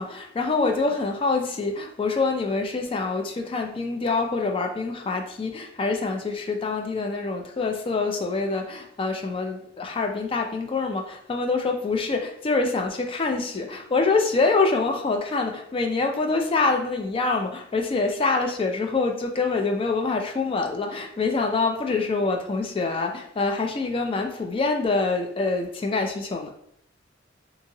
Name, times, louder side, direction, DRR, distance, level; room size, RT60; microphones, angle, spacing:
voice 1, 0.0-26.5, left 3 dB, 30° left, 3 dB, 0.3 m, -25 dB
2.7 x 2.7 x 2.6 m, 0.70 s
head